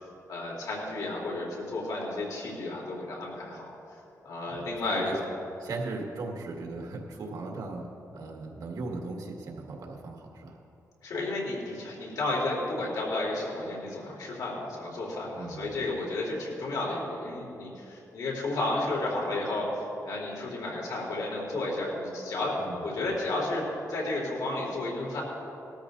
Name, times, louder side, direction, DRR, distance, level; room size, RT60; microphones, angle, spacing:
voice 1, 0.3-3.7 4.2-5.1 11.0-22.5 22.8-25.2, left 2 dB, 85° left, -3 dB, 3.2 m, -32 dB
voice 2, 4.5-5.2 5.6-7.9 8.1-10.6 15.3-15.7 22.6-22.9, right 3 dB, 80° right, 0 dB, 1.8 m, -38 dB
20.0 x 13.5 x 2.6 m, 2.8 s
wide cardioid pair, 110°, 6 cm